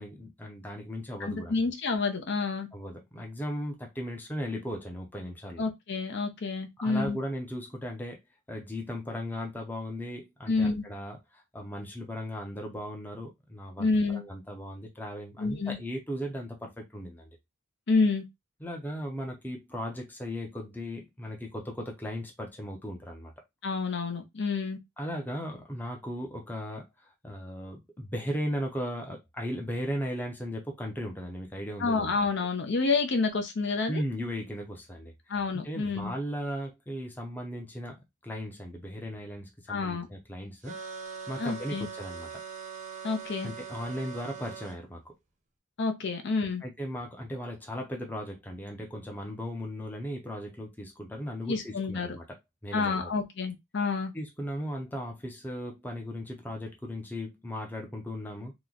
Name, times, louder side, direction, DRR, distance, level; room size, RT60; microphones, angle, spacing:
voice 1, 0.0-1.6 2.7-5.6 6.8-8.2 8.5-17.3 18.6-23.3 25.0-32.1 33.9-35.3 35.6-38.0 38.2-40.7 41.3-42.3 43.4-45.0 46.6-52.2 52.6-53.1 54.1-58.5, equal, 10° left, 0.6 m, -37 dB
voice 2, 1.2-2.7 5.6-7.2 10.5-10.8 13.8-14.2 15.4-15.8 17.9-18.2 23.6-24.8 31.8-34.0 35.3-36.1 39.7-40.1 41.4-41.9 43.0-43.5 45.8-46.6 51.5-52.1 52.7-54.1, left 4 dB, 55° left, 0.6 m, -28 dB
sound 1, 40.6-44.8, right 6 dB, 35° right, 0.6 m, -41 dB
3.0 x 2.1 x 3.8 m
head